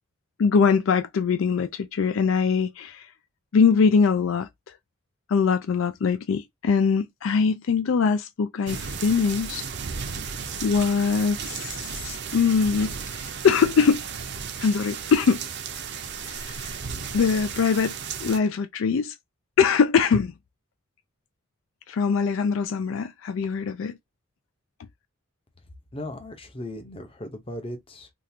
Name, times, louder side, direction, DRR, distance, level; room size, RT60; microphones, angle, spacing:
voice 1, 0.4-3.1 3.5-4.5 5.3-9.6 10.1-10.2 10.6-14.0 14.6-15.5 16.2-16.7 17.1-18.0 18.2-19.1 19.6-20.3 21.9-24.0, left 5 dB, 70° left, 0.4 m, -22 dB
sound 1, 8.7-18.4, right 6 dB, 55° right, 0.6 m, -34 dB
voice 2, 25.9-28.1, left 1 dB, 25° left, 0.7 m, -37 dB
3.7 x 2.4 x 2.7 m
head